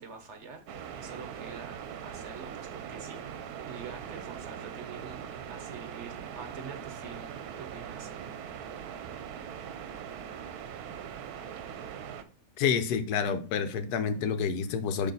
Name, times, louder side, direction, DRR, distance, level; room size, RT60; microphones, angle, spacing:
voice 1, 0.0-3.2 3.5-8.1, right 5 dB, 55° right, 6 dB, 1.0 m, -46 dB
sound 1, 0.7-12.2, right 8 dB, 80° right, 1.1 m, -41 dB
voice 2, 12.6-15.1, left 6 dB, 85° left, 10 dB, 1.2 m, -28 dB
6.3 x 3.1 x 5.3 m, 0.38 s
omnidirectional pair, 1.6 m